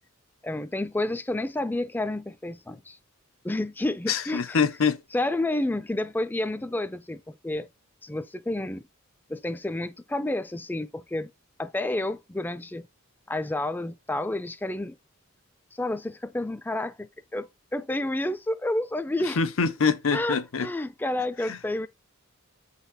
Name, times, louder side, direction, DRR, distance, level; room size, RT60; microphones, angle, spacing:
voice 1, 0.4-3.0 3.4-4.6 5.1-7.7 8.0-8.8 9.3-11.3 11.6-12.9 13.3-15.0 15.7-19.4 20.1-21.9, left 1 dB, 10° left, 0.4 m, -30 dB
voice 2, 4.1-5.0 19.4-20.7 21.5-21.6, left 5 dB, 75° left, 0.7 m, -25 dB
8.6 x 4.1 x 4.0 m
head